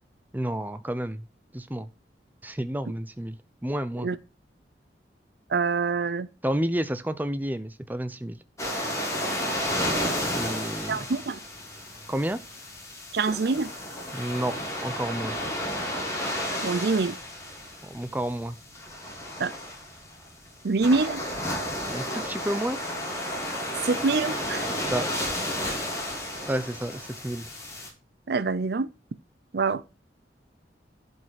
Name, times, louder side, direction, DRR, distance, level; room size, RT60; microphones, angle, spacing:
voice 1, 0.3-1.2 1.5-1.9 2.4-3.4 3.6-4.1 6.4-8.4 10.3-11.1 12.1-12.4 14.1-15.3 17.8-18.6 21.9-22.8 24.9-25.1 26.5-27.5, right 1 dB, 10° right, 0.7 m, -30 dB
voice 2, 5.5-6.3 10.9-11.4 13.1-13.7 16.6-17.2 19.4-19.5 20.6-21.2 23.8-24.7 28.3-28.9 29.5-29.8, right 4 dB, 65° right, 0.5 m, -25 dB
sound 1, 8.6-27.9, left 1 dB, 20° left, 3.1 m, -32 dB
11.0 x 5.4 x 5.8 m
head